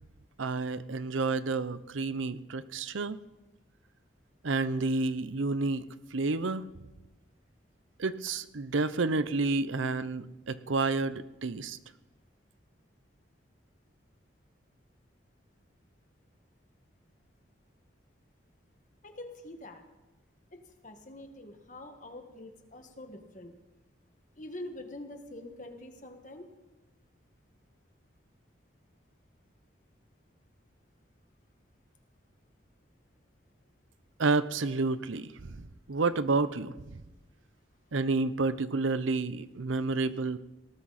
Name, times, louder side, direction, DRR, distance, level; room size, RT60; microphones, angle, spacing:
voice 1, 0.4-3.2 4.4-6.7 8.0-11.8 34.2-37.0 37.9-40.4, right 3 dB, 80° right, 15 dB, 0.7 m, -30 dB
voice 2, 19.0-19.8 20.5-23.5 24.4-26.5, left 1 dB, 40° left, 5 dB, 1.8 m, -45 dB
19.0 x 18.0 x 4.2 m, 1.1 s
head